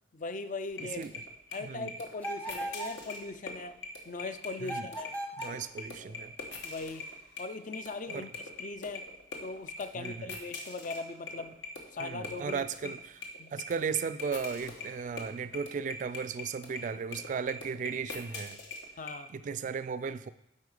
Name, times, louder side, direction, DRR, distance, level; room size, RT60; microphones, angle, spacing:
voice 1, 0.1-1.0 1.5-3.8 4.1-5.1 6.6-7.0 7.4-9.0 9.4-11.5 11.9-12.9 13.4-13.5 19.0-19.3, left 3 dB, 45° left, 10 dB, 0.5 m, -40 dB
sound 1, 0.7-19.2, left 4 dB, 75° left, 1.2 m, -41 dB
sound 2, 2.2-3.0 4.6-5.6, right 1 dB, 10° left, 0.7 m, -38 dB
voice 2, 5.4-6.3 8.1-8.3 10.0-10.3 12.0-13.2 13.5-18.6 19.3-20.3, right 6 dB, 45° right, 13 dB, 0.3 m, -36 dB
8.3 x 4.4 x 4.9 m, 0.80 s
head